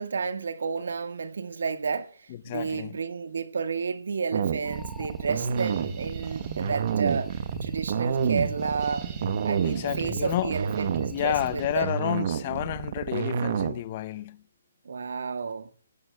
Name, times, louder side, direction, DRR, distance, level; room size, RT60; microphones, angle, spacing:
voice 1, 0.0-7.3 7.6-9.1 9.4-11.9 14.8-15.7, right 5 dB, 75° right, 1.6 m, -31 dB
voice 2, 2.5-3.0 9.6-10.5 11.1-14.4, left 13 dB, 30° left, 0.6 m, -30 dB
sound 1, 4.3-13.8, right 7 dB, 45° right, 1.0 m, -29 dB
sound 2, 4.6-11.6, left 2 dB, 5° left, 1.1 m, -47 dB
sound 3, 5.6-11.8, right 4 dB, 20° right, 3.1 m, -41 dB
19.5 x 16.0 x 2.3 m
hypercardioid pair, 165°, 0 cm